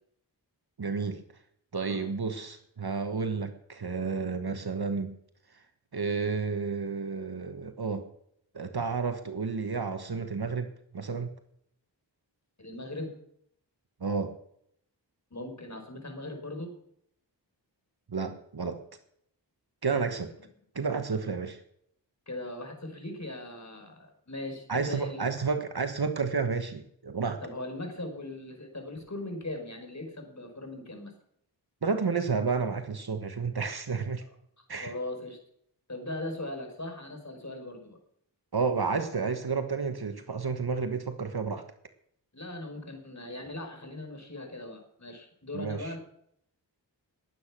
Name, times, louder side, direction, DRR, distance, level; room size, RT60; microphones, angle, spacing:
voice 1, 0.8-1.2 1.7-5.1 5.9-8.0 8.5-11.3 14.0-14.4 18.1-18.8 19.8-20.3 20.7-21.6 24.7-27.4 31.8-34.2 34.7-34.9 38.5-41.6 45.5-45.9, right 5 dB, 60° right, 8 dB, 1.4 m, -31 dB
voice 2, 12.6-13.1 15.3-16.7 22.3-25.3 27.4-31.1 34.8-35.4 35.9-38.0 42.3-46.0, left 1 dB, 40° left, 4 dB, 4.9 m, -39 dB
20.5 x 8.8 x 6.2 m, 0.70 s
wide cardioid pair, 50°, 43 cm